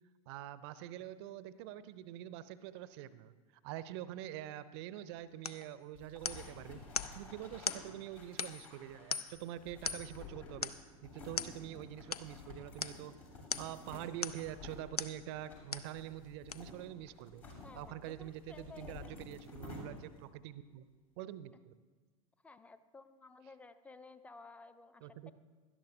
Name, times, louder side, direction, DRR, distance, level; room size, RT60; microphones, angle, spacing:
voice 1, 0.3-3.3 3.6-6.8 7.1-10.7 11.0-13.1 13.6-17.4 17.7-20.8 21.2-21.7 25.0-25.3, right 12 dB, 45° right, 16 dB, 0.5 m, -45 dB
sound 1, 5.4-5.7 6.2-6.5 6.9-7.2 7.6-7.9 8.4-8.7 9.1-9.4 9.8-10.2 10.6-10.9 11.4-11.6 12.1-12.3 12.8-13.0 13.5-13.8 14.2-14.5 15.0-15.2 15.7-15.9 16.5-16.6, left 6 dB, 85° left, 0.4 m, -39 dB
sound 2, 5.9-20.3, left 3 dB, 65° left, 2.9 m, -52 dB
voice 2, 17.6-19.1 22.4-25.3, left 4 dB, 5° left, 12 dB, 0.5 m, -55 dB
17.0 x 12.0 x 2.6 m, 1.4 s
figure-of-eight pair, 85°, 19 cm